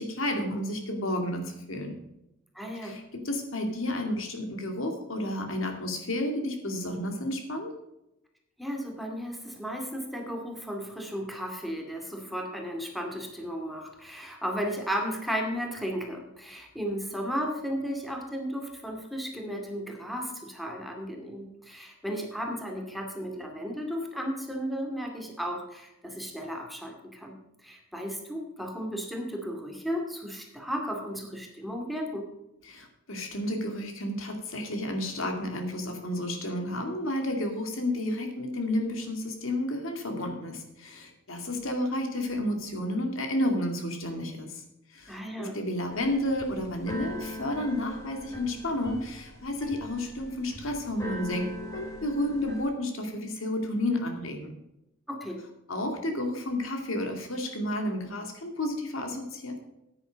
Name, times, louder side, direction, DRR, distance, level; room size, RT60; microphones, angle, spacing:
voice 1, 0.0-1.9 2.8-7.7 32.6-44.6 44.9-54.5 55.7-59.6, left 1 dB, 70° left, 4 dB, 2.3 m, -31 dB
voice 2, 2.5-3.0 8.6-32.3 45.1-45.6 55.1-55.4, equal, ahead, 1 dB, 2.2 m, -34 dB
Keyboard (musical), 45.9-52.6, left 1 dB, 15° left, 3.9 m, -41 dB
9.8 x 9.8 x 5.1 m, 0.88 s
head